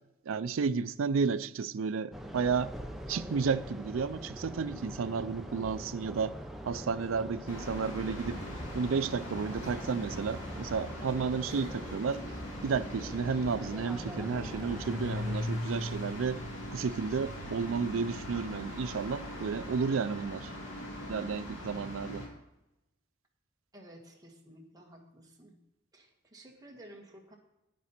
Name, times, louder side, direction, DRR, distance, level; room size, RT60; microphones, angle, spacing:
voice 1, 0.3-2.7 3.1-6.3 6.6-8.4 8.7-12.2 12.6-16.4 16.7-20.5 21.1-22.2, right 5 dB, 70° right, 0.4 m, -32 dB
sound 1, 2.1-15.4, equal, ahead, 0.8 m, -43 dB
sound 2, 7.5-22.3, left 1 dB, 65° left, 2.5 m, -40 dB
voice 2, 23.7-25.6 25.9-27.3, right 1 dB, 20° right, 1.6 m, -53 dB
9.5 x 9.4 x 4.3 m
head